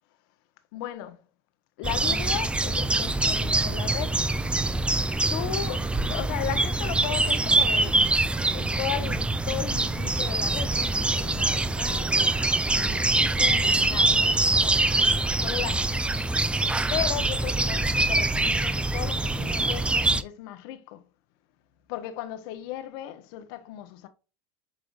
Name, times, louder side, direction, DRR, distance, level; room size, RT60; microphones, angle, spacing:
voice 1, 0.7-1.2 1.8-4.2 5.3-8.0 8.5-12.4 12.7-14.8 15.3-16.2 16.9-21.0 21.9-24.1, left 12 dB, 65° left, 1.1 m, -36 dB
sound 1, 1.8-20.2, right 2 dB, 10° right, 0.6 m, -24 dB
8.4 x 4.9 x 2.5 m
hypercardioid pair, 95°, 13 cm